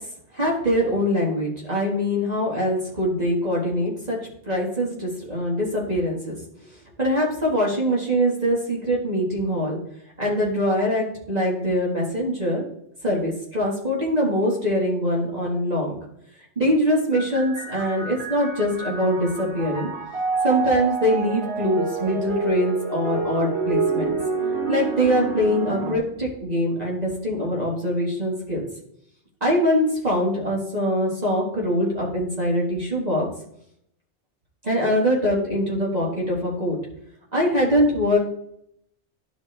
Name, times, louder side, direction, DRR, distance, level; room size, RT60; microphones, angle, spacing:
voice 1, 0.3-4.2 4.5-6.3 6.7-9.8 10.2-12.6 13.0-16.0 16.6-19.9 20.4-24.2 24.7-28.7 29.4-33.3 34.6-36.8 37.3-38.2, equal, 35° right, -4 dB, 1.8 m, -23 dB
sound 1, 17.1-26.0, right 4 dB, 60° right, 2.3 m, -28 dB
12.0 x 4.2 x 3.3 m, 0.73 s
omnidirectional pair, 1.2 m